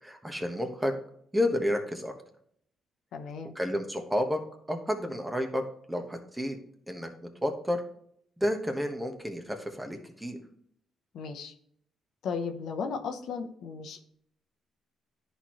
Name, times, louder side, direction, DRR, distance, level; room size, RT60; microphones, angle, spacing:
voice 1, 0.0-0.9 1.3-2.1 3.5-4.4 4.7-5.6 5.9-6.6 6.9-7.8 8.4-10.4, left 1 dB, 10° right, 4 dB, 1.3 m, -30 dB
voice 2, 3.1-3.5 11.1-11.5 12.2-14.1, left 5 dB, 75° left, 6 dB, 0.8 m, -35 dB
10.5 x 4.4 x 3.1 m, 0.67 s
cardioid pair, 90°, 0 cm